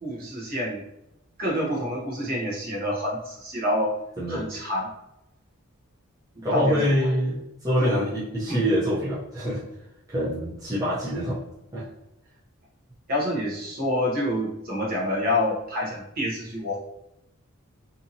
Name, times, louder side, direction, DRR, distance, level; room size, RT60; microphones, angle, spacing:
voice 1, 0.0-0.8 1.4-4.0 4.3-4.9 6.4-6.9 7.8-8.1 8.5-8.6 13.1-16.8, left 1 dB, 40° right, -4 dB, 0.8 m, -27 dB
voice 2, 6.4-9.6 10.1-11.4 11.7-11.9, equal, 15° right, -10 dB, 0.6 m, -25 dB
2.7 x 2.6 x 2.7 m, 0.86 s
head